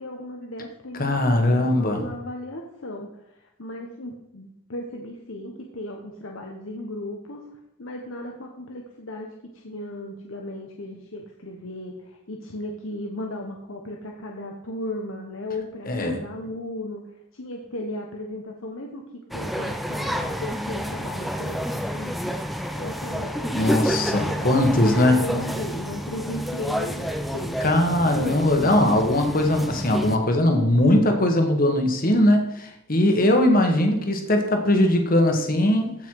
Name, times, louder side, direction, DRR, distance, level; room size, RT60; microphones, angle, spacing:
voice 1, 0.0-7.4 7.8-9.3 9.5-17.0 17.3-19.0 19.3-22.3 22.7-24.5 24.8-27.6, left 1 dB, 80° left, 1 dB, 1.2 m, -36 dB
voice 2, 1.0-2.0 15.9-16.2 23.5-25.2 27.6-35.9, left 1 dB, 45° left, 4 dB, 1.6 m, -20 dB
sound 1, 19.3-30.2, equal, ahead, 0.7 m, -29 dB
15.0 x 5.7 x 4.8 m, 0.85 s
head